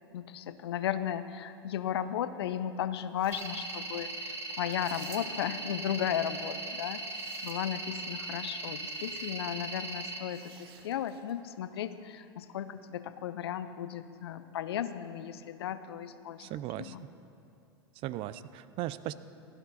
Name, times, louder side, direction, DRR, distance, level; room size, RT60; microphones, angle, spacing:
voice 1, 0.1-16.5 16.8-17.0, left 10 dB, 75° left, 13 dB, 0.5 m, -35 dB
sound 1, 3.1-3.8 4.7-5.6 6.7-7.9 8.8-9.4 10.3-11.4, right 9 dB, 70° right, 0.9 m, -55 dB
sound 2, 3.3-10.2, right 2 dB, 20° right, 1.2 m, -39 dB
voice 2, 16.4-16.9 18.0-19.1, right 14 dB, 45° right, 15 dB, 0.4 m, -37 dB
16.0 x 10.0 x 4.1 m, 2.6 s
hypercardioid pair, 100°, 13 cm